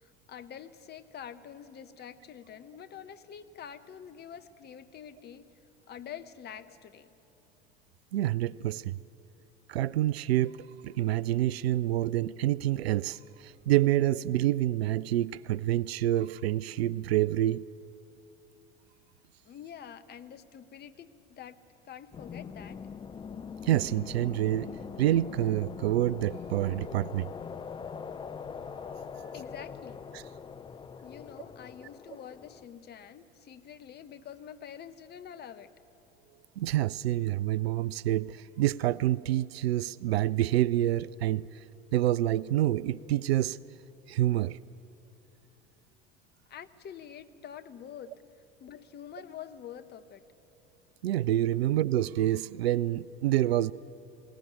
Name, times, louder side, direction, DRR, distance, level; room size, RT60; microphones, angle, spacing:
voice 1, 0.0-5.5 5.9-7.2 19.4-22.8 29.3-30.0 31.0-35.7 46.5-48.2 48.6-50.3, left 8 dB, 30° left, 11 dB, 1.0 m, -46 dB
voice 2, 8.1-9.0 9.7-17.6 23.6-24.7 25.0-27.3 30.1-30.2 36.6-41.6 41.9-43.6 44.1-44.6 51.0-53.7, right 13 dB, 70° right, 21 dB, 0.5 m, -27 dB
sound 1, 22.1-32.7, left 6 dB, 15° left, 0.5 m, -42 dB
21.0 x 18.0 x 9.2 m, 2.8 s
figure-of-eight pair, 75°, 33 cm